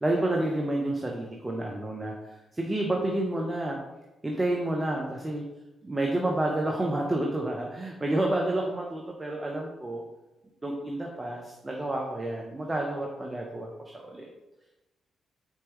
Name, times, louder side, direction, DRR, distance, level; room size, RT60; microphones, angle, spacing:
voice 1, 0.0-3.8 4.2-5.4 5.8-10.0 10.6-14.3, right 1 dB, 25° right, 0 dB, 0.7 m, -29 dB
4.3 x 3.6 x 3.1 m, 1.0 s
hypercardioid pair, 40°, 0 cm